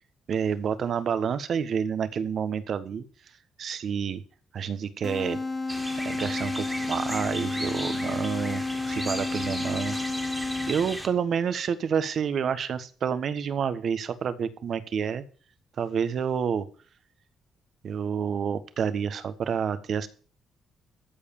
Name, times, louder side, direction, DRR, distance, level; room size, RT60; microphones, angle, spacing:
voice 1, 0.3-3.0 3.6-4.2 4.5-5.4 6.0-10.0 10.2-10.3 10.7-15.2 15.8-16.7 17.8-20.1, right 7 dB, 60° right, 13 dB, 1.3 m, -29 dB
sound 1, 5.0-11.1, left 3 dB, 15° left, 2.3 m, -31 dB
sound 2, 5.7-11.1, right 1 dB, 5° right, 2.3 m, -36 dB
14.5 x 4.9 x 8.8 m, 0.42 s
cardioid pair, 90°, 0 cm